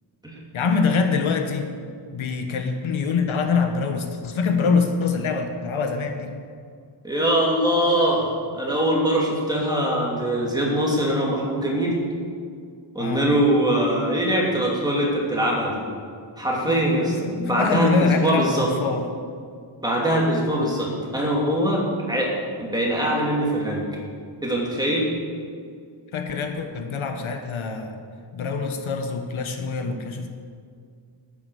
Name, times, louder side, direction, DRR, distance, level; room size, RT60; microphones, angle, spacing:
voice 1, 0.5-1.7 2.1-6.3 13.0-13.3 16.7-19.1 26.1-28.0 28.3-30.3, left 5 dB, 75° left, 6 dB, 1.2 m, -24 dB
voice 2, 7.0-11.9 12.9-15.8 16.4-18.7 19.8-22.3 22.6-23.8 24.4-25.1, right 1 dB, 10° right, -3 dB, 2.6 m, -22 dB
10.5 x 9.9 x 6.9 m, 2.2 s
wide cardioid pair, 160°, 49 cm